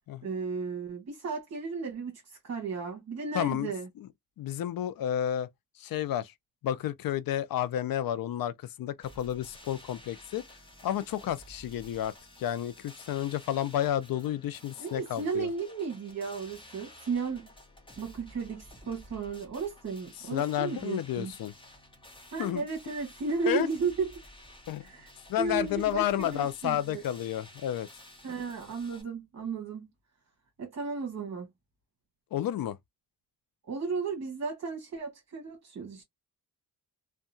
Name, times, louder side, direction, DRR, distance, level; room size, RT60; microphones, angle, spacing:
voice 1, 0.2-3.9 14.8-17.5 18.0-21.3 22.3-24.2 24.8-25.1 25.4-27.0 28.2-29.9 30.6-31.5 33.7-36.0, right 4 dB, 45° right, 1.1 m, -34 dB
voice 2, 3.3-3.7 4.0-4.1 4.4-5.5 5.8-6.3 6.6-10.4 10.8-15.5 20.2-21.5 22.4-22.6 23.5-23.7 24.7-24.8 25.3-27.9 32.3-32.8, left 11 dB, 65° left, 0.5 m, -31 dB
sound 1, 9.0-29.0, left 1 dB, 15° left, 1.0 m, -53 dB
2.7 x 2.3 x 2.5 m
cardioid pair, 110°, 37 cm